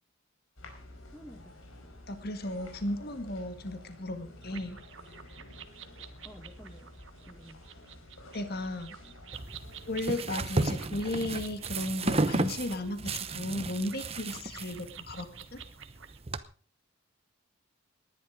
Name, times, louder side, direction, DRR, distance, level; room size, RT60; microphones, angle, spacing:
sound 1, 0.6-10.3, left 1 dB, 85° left, 4.8 m, -51 dB
voice 1, 1.1-1.6 6.2-6.9 7.3-7.6, equal, 5° left, 3 dB, 1.5 m, -50 dB
voice 2, 2.1-4.8 8.3-9.0 9.9-15.6, left 1 dB, 50° left, 8 dB, 1.9 m, -35 dB
sound 2, 4.4-16.2, right 9 dB, 70° right, 1.5 m, -50 dB
Throwing away trash in can, 9.3-16.4, right 2 dB, 30° right, 0.9 m, -33 dB
19.0 x 11.0 x 5.1 m, 0.39 s
head